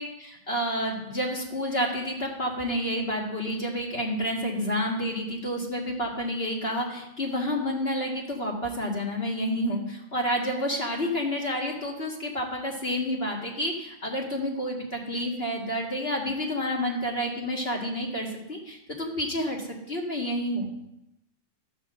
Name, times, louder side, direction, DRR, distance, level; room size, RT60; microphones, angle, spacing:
voice 1, 0.0-20.8, equal, 25° left, -1 dB, 1.3 m, -29 dB
13.0 x 6.3 x 7.8 m, 0.85 s
omnidirectional pair, 4.1 m